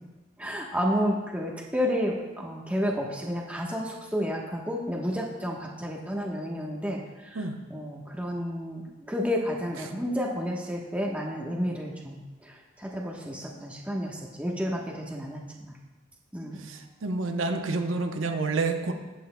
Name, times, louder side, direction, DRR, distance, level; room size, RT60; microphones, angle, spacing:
voice 1, 0.4-7.4 7.7-15.7 16.3-16.7, equal, 5° right, -1 dB, 1.1 m, -31 dB
voice 2, 16.6-18.9, right 3 dB, 75° right, 5 dB, 0.8 m, -29 dB
15.5 x 8.4 x 2.2 m, 1.2 s
head